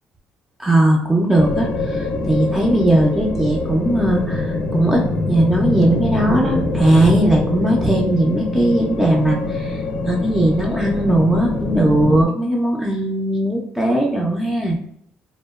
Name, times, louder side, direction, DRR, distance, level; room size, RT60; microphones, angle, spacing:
voice 1, 0.6-9.8 10.1-14.8, right 1 dB, 10° right, -1 dB, 0.3 m, -18 dB
sound 1, 1.3-12.3, left 2 dB, 65° left, 0.4 m, -24 dB
2.8 x 2.1 x 2.3 m, 0.69 s
cardioid pair, 130°, 3 cm